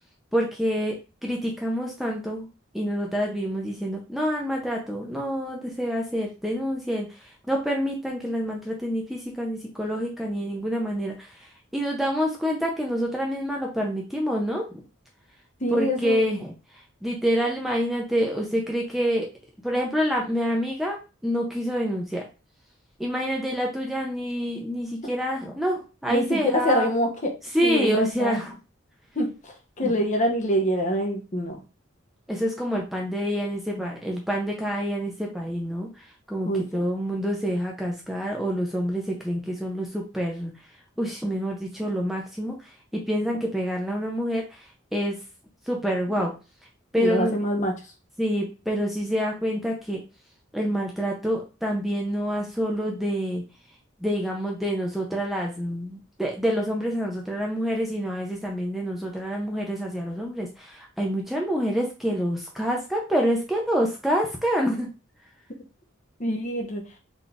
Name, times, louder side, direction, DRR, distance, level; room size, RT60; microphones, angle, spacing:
voice 1, 0.3-1.0 1.2-2.5 2.7-14.6 15.7-19.3 19.6-21.0 21.2-22.2 23.0-26.9 27.5-28.5 29.8-29.9 32.3-40.5 41.0-42.5 42.9-44.7 44.9-45.2 45.7-46.3 46.9-47.3 48.2-50.0 50.5-53.4 54.0-64.9, equal, ahead, -1 dB, 0.5 m, -27 dB
voice 2, 15.6-16.2 26.1-27.3 27.6-28.3 29.1-31.6 36.4-36.9 46.2-46.3 47.0-47.9 66.2-66.9, equal, 35° left, 2 dB, 0.8 m, -25 dB
3.8 x 2.4 x 3.4 m, 0.32 s
head